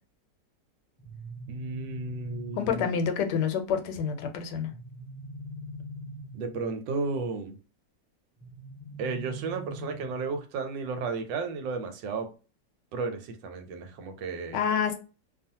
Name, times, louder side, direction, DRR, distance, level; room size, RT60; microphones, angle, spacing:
sound 1, 1.0-3.0 4.7-6.6 8.4-10.3, right 3 dB, 30° left, 0.4 m, -42 dB
voice 1, 1.5-2.9 6.3-7.6 9.0-12.3 12.9-14.6, right 4 dB, 85° right, 1.4 m, -33 dB
voice 2, 2.6-4.7 14.5-14.9, left 7 dB, 75° left, 1.2 m, -28 dB
2.8 x 2.4 x 2.7 m
omnidirectional pair, 1.9 m